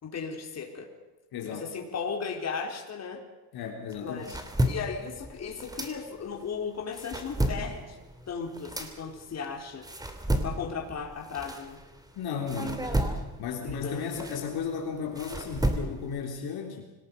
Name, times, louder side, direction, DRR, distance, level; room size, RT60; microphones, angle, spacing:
voice 1, 0.0-0.9 1.4-3.2 4.0-8.0 8.3-9.9 10.4-11.8 12.6-13.0 13.6-14.6, left 5 dB, 40° left, 2 dB, 4.3 m, -36 dB
voice 2, 1.3-1.7 3.5-4.2 12.1-12.9 13.4-16.9, left 6 dB, 65° left, 2 dB, 3.6 m, -34 dB
sound 1, 3.9-6.4 6.8-12.1 12.5-16.2, right 1 dB, 10° right, 2.9 m, -32 dB
25.5 x 19.0 x 5.4 m, 1.1 s
cardioid pair, 120°, 40 cm